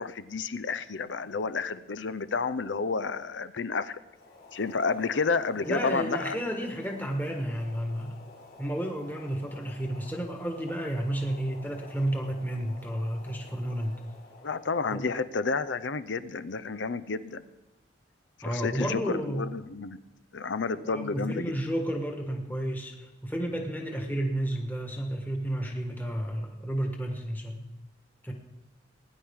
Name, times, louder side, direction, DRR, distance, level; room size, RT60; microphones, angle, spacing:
voice 1, 0.0-4.0 4.5-6.4 14.4-17.4 18.4-20.0 20.3-21.6, left 4 dB, 80° left, 14 dB, 0.6 m, -30 dB
Boiling, 4.0-15.0, left 2 dB, 55° left, 2.3 m, -51 dB
voice 2, 5.6-8.2 8.6-13.9 14.9-15.1 18.4-19.5 20.8-27.7 28.2-28.3, right 1 dB, 10° left, 2 dB, 1.5 m, -32 dB
20.0 x 10.5 x 3.6 m, 1.0 s
head